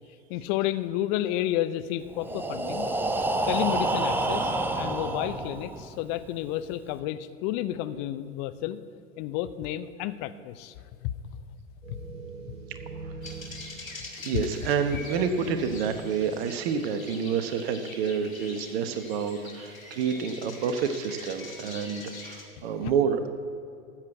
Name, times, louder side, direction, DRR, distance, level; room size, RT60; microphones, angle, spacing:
voice 1, 0.3-2.9 3.5-8.8 9.2-10.7 11.0-11.1 11.9-12.0 14.3-14.4 22.8-22.9, left 13 dB, 35° left, 12 dB, 0.7 m, -31 dB
Breathing, 2.1-6.0, right 2 dB, 5° right, 0.6 m, -28 dB
sound 1, 11.8-17.0, right 4 dB, 75° right, 2.6 m, -43 dB
sound 2, 13.2-22.5, left 3 dB, 85° left, 2.2 m, -44 dB
voice 2, 14.2-23.3, right 6 dB, 50° right, 8 dB, 1.2 m, -28 dB
13.5 x 7.4 x 7.8 m, 2.4 s
figure-of-eight pair, 95°, 39 cm